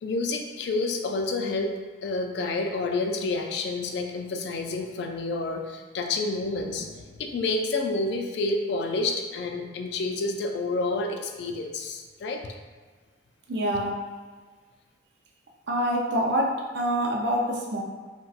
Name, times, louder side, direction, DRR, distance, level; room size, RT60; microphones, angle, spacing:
voice 1, 0.0-12.5, left 3 dB, 65° left, 4 dB, 0.3 m, -29 dB
voice 2, 13.5-14.0 15.7-17.8, equal, 65° right, 0 dB, 0.5 m, -26 dB
3.9 x 2.2 x 2.3 m, 1.4 s
head